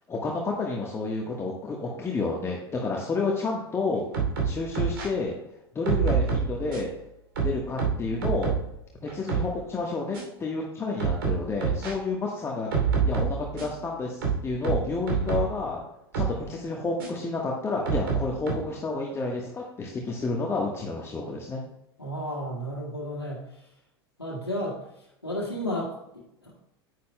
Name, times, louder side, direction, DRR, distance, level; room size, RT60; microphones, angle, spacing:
voice 1, 0.1-4.0 4.4-5.3 5.7-6.9 7.4-8.5 9.0-12.7 13.0-15.8 16.1-21.6, left 3 dB, 20° left, -1 dB, 1.3 m, -30 dB
sound 1, 4.1-5.1 5.8-6.9 7.3-8.7 9.1-9.5 10.1-10.2 11.0-11.9 12.7-13.8 14.2-15.6 16.1-16.4 17.0-17.1 17.8-18.5, right 6 dB, 65° right, 2.8 m, -27 dB
voice 2, 22.0-23.4 24.2-24.8 25.2-26.6, equal, 90° left, -7 dB, 1.8 m, -32 dB
10.0 x 9.5 x 2.2 m, 0.82 s
figure-of-eight pair, 80°, 13 cm